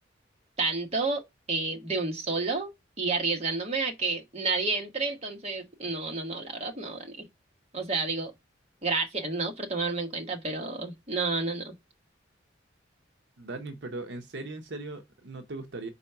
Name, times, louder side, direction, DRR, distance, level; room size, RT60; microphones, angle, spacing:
voice 1, 0.6-2.7 3.0-7.2 7.7-8.3 8.8-11.7, right 3 dB, 35° right, 1.3 m, -30 dB
voice 2, 13.4-15.9, right 2 dB, 65° right, 0.7 m, -38 dB
4.6 x 4.1 x 5.7 m
head